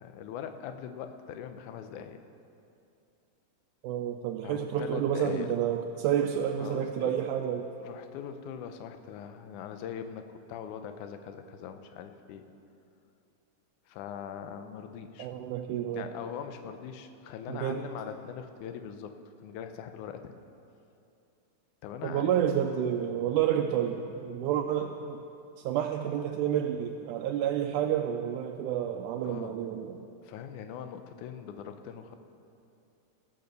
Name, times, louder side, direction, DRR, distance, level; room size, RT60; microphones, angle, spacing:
voice 1, 0.0-2.2 4.4-5.5 6.6-7.2 7.8-12.4 13.9-15.3 15.9-19.1 19.4-20.4 21.8-22.3 29.2-29.5 30.2-32.2, left 8 dB, 80° left, 8 dB, 2.1 m, -41 dB
voice 2, 3.8-7.7 15.2-16.1 17.5-17.8 22.0-25.2 25.6-30.0, right 9 dB, 80° right, 3 dB, 2.0 m, -30 dB
18.0 x 6.7 x 6.8 m, 2.6 s
omnidirectional pair, 3.7 m